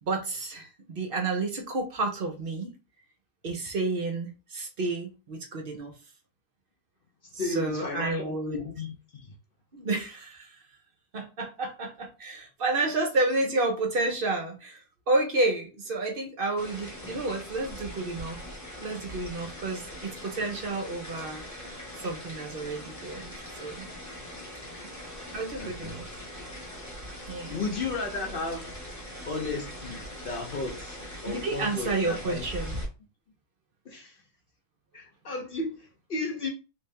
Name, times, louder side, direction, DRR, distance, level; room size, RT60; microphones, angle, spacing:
voice 1, 0.0-2.7 3.4-5.9 7.4-8.6 9.7-10.6 11.1-14.8 15.1-18.4 18.8-21.5 22.0-23.3 23.6-23.9 25.3-26.1 27.3-27.7 31.3-32.8, right 2 dB, 55° right, 0.6 m, -30 dB
voice 2, 7.4-9.3 25.6-26.0 27.5-28.8 29.3-31.0 31.2-32.4 33.9-34.2 34.9-36.5, left 3 dB, 70° left, 0.5 m, -34 dB
sound 1, 16.6-32.9, equal, 15° left, 0.9 m, -41 dB
3.3 x 2.8 x 3.3 m
omnidirectional pair, 1.8 m